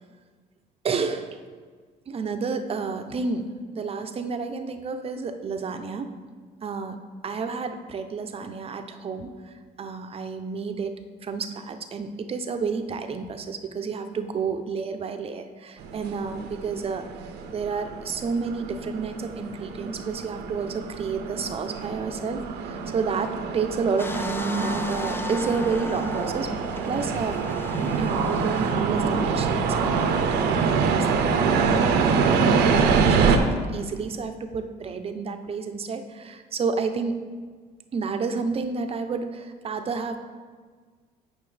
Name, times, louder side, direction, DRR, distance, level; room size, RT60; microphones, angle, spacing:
voice 1, 0.8-1.4 2.1-6.1 6.6-17.1 17.5-26.5 26.8-27.4 28.0-37.2 37.9-40.2, right 5 dB, 35° right, 7 dB, 0.6 m, -30 dB
sound 1, 15.8-33.4, right 5 dB, 80° right, 0.7 m, -25 dB
sound 2, 24.0-29.0 29.6-29.7, left 2 dB, 15° left, 0.3 m, -37 dB
9.1 x 5.4 x 3.3 m, 1.5 s
cardioid pair, 110°, 17 cm